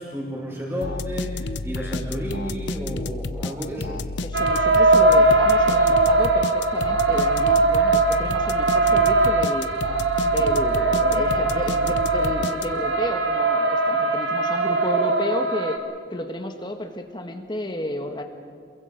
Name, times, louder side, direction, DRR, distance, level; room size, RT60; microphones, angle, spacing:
voice 1, 0.0-4.0, equal, 15° right, -3 dB, 5.1 m, -31 dB
sound 1, 0.8-13.0, left 3 dB, 75° left, 0.8 m, -31 dB
voice 2, 4.2-9.7 10.2-15.8 16.1-18.2, left 1 dB, 25° left, 6 dB, 1.4 m, -32 dB
sound 2, 4.3-15.8, right 2 dB, 80° right, 1.9 m, -20 dB
28.0 x 22.5 x 5.2 m, 2.2 s
head